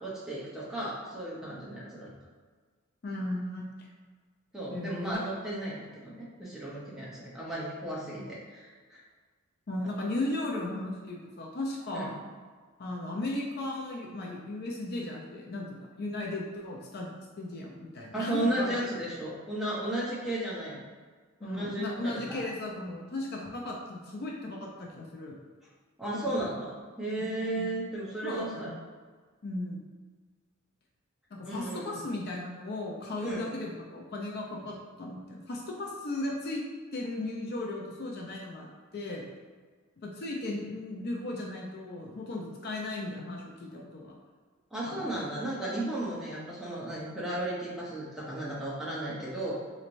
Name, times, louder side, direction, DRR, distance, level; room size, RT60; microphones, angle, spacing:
voice 1, 0.0-2.1 4.5-9.0 11.9-12.1 18.1-20.8 21.4-22.5 26.0-28.7 31.4-32.0 33.2-33.5 44.7-49.6, right 1 dB, ahead, -7 dB, 0.7 m, -34 dB
voice 2, 3.0-3.9 4.7-5.2 9.7-12.1 12.8-18.8 21.4-25.3 27.2-27.7 28.2-28.8 29.4-29.8 31.3-36.6 36.9-38.7 38.9-39.2 40.0-44.2 44.9-45.2, left 2 dB, 45° left, -1 dB, 0.5 m, -36 dB
4.1 x 3.1 x 2.5 m, 1.5 s
head